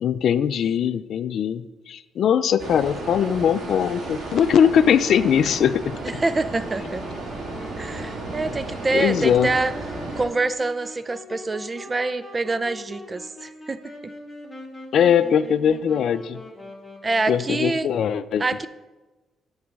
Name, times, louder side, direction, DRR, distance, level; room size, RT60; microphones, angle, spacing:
voice 1, 0.0-6.2 8.9-9.5 14.9-16.4 17.3-18.7, left 8 dB, 65° left, 14 dB, 0.3 m, -21 dB
sound 1, 2.6-10.3, right 2 dB, 70° right, 2.4 m, -34 dB
voice 2, 6.0-7.0 7.8-9.7 10.2-14.1 17.0-17.9 18.4-18.7, right 3 dB, 25° right, 14 dB, 0.5 m, -26 dB
Wind instrument woodwind instrument, 6.8-17.7, left 1 dB, 15° left, 2.0 m, -41 dB
9.6 x 4.0 x 6.7 m, 1.1 s
cardioid pair, 90°, 0 cm